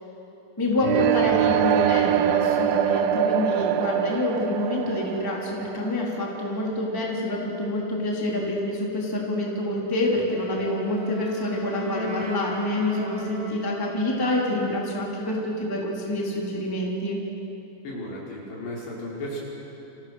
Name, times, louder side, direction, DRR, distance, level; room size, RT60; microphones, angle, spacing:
voice 1, 0.6-17.2, left 1 dB, 5° left, -3 dB, 3.0 m, -27 dB
sound 1, 0.8-6.7, right 9 dB, 85° right, 2.1 m, -24 dB
Wind instrument woodwind instrument, 10.2-14.4, equal, 55° right, 5.8 m, -36 dB
voice 2, 17.8-19.4, left 1 dB, 65° left, -5 dB, 7.6 m, -34 dB
30.0 x 27.5 x 6.5 m, 2.9 s
omnidirectional pair, 5.4 m